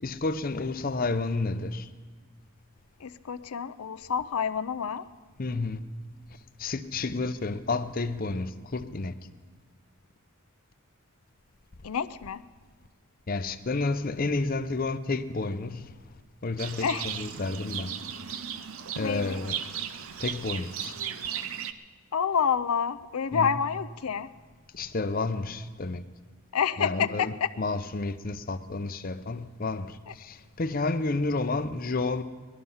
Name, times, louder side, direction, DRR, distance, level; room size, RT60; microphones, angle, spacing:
voice 1, 0.0-1.9 5.4-5.8 6.6-9.1 13.3-15.9 16.4-17.9 19.0-19.6 20.2-20.9 23.3-23.6 24.7-26.0 26.8-32.2, left 3 dB, 40° left, 0.6 m, -30 dB
voice 2, 3.0-5.0 11.8-12.4 16.8-17.1 19.0-19.4 22.1-24.3 26.5-27.5, left 7 dB, 80° left, 0.5 m, -28 dB
Livestock farm animals working animals, 16.6-21.7, right 8 dB, 70° right, 0.6 m, -36 dB
19.0 x 12.5 x 5.6 m
head